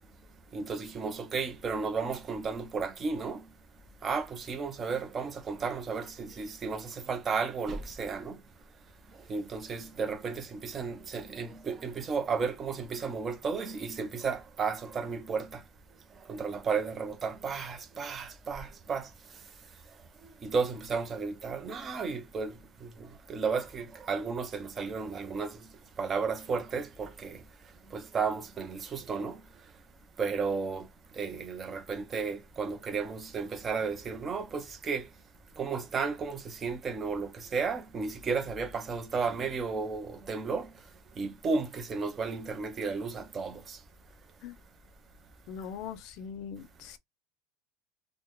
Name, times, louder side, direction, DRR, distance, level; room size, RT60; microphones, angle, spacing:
voice 1, 0.5-3.4 4.0-8.4 9.3-15.6 16.3-19.1 20.4-22.5 22.8-25.6 26.0-27.4 27.9-29.4 30.2-30.9 31.2-35.1 35.6-40.7 41.2-43.8, right 5 dB, 20° right, 0.6 m, -33 dB
voice 2, 45.5-47.0, left 7 dB, 50° left, 0.5 m, -41 dB
3.6 x 2.1 x 3.0 m
cardioid pair, 165°, 0 cm